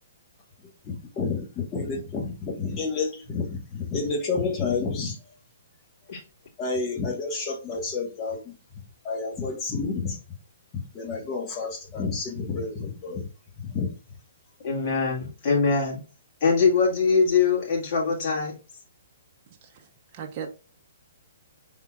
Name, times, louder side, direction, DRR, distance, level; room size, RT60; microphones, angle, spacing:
voice 1, 0.8-5.2 6.6-8.5 9.0-10.2 10.9-13.2 13.6-13.9, left 4 dB, 25° left, 1.3 m, -30 dB
voice 2, 14.6-16.0 16.4-18.5, left 5 dB, 40° left, 2.1 m, -22 dB
voice 3, 19.6-20.5, right 7 dB, 35° right, 0.7 m, -38 dB
5.4 x 3.6 x 2.3 m
hypercardioid pair, 150°, 0 cm